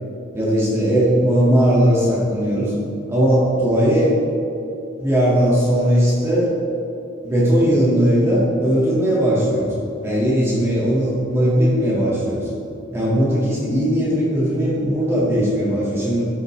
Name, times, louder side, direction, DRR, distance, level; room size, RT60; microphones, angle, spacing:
voice 1, 0.3-2.7 3.1-4.1 5.0-6.5 7.2-9.7 10.0-12.5 12.9-16.3, equal, 15° right, -8 dB, 1.7 m, -18 dB
13.0 x 6.6 x 3.1 m, 2.8 s
head